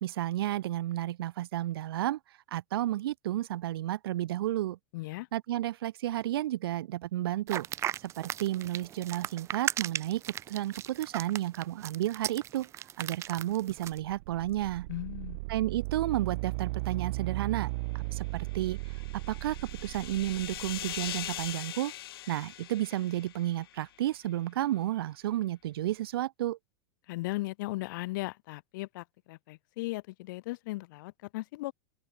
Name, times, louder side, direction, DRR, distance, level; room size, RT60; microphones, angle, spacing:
voice 1, 0.0-2.2 2.5-4.8 5.3-7.7 8.0-10.2 10.5-12.7 13.0-14.9 15.5-17.7 17.9-18.8 19.1-19.6 19.8-21.9 22.3-26.6, right 14 dB, 80° right, 0.9 m, -32 dB
voice 2, 4.9-5.3 14.9-15.4 27.1-31.7, left 20 dB, 55° left, 1.4 m, -37 dB
sound 1, 7.5-14.0, right 11 dB, 25° right, 1.0 m, -36 dB
sound 2, 13.7-21.5, right 25 dB, 45° right, 0.3 m, -37 dB
sound 3, 18.2-23.8, left 13 dB, 80° left, 1.1 m, -42 dB
open air
supercardioid pair, 160°, 12 cm